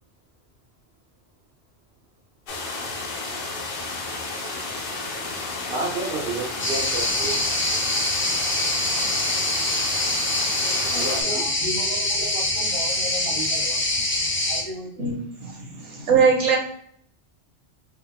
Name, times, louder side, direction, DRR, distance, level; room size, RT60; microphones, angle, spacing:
sound 1, 2.5-11.2, left 3 dB, 55° left, 0.8 m, -32 dB
voice 1, 5.7-7.4 10.9-11.4, right 3 dB, 60° right, -3 dB, 1.0 m, -30 dB
sound 2, 6.6-14.6, left 1 dB, 15° left, 0.5 m, -24 dB
voice 2, 10.5-13.8 14.5-15.0, right 1 dB, 30° right, -5 dB, 1.3 m, -35 dB
voice 3, 15.0-16.6, right 5 dB, 85° right, 0 dB, 1.2 m, -21 dB
3.5 x 3.5 x 2.2 m, 0.64 s
omnidirectional pair, 1.1 m